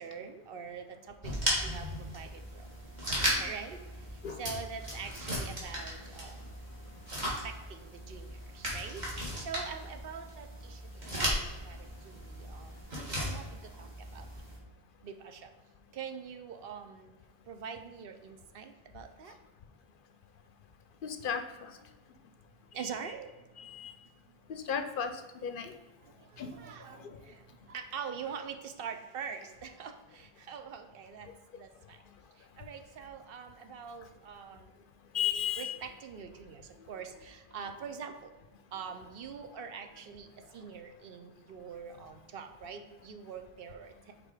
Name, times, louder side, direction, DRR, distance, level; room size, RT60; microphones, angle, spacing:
voice 1, 0.0-1.3 1.6-2.7 3.4-6.4 7.2-11.4 11.6-14.3 15.0-15.5 15.9-17.1 17.5-19.3 22.7-23.3 24.3-24.4 26.0-31.3 31.6-32.0 32.4-34.7 35.6-38.3 38.7-44.3, right 6 dB, 65° right, 6 dB, 0.8 m, -44 dB
sound 1, 1.2-14.6, equal, 45° right, 1.8 m, -37 dB
voice 2, 21.0-21.7 23.6-23.9 24.5-25.1 25.4-25.7 26.4-26.5 35.1-35.8, left 8 dB, 60° left, 8 dB, 0.7 m, -34 dB
5.1 x 4.3 x 4.7 m, 1.2 s
omnidirectional pair, 1.1 m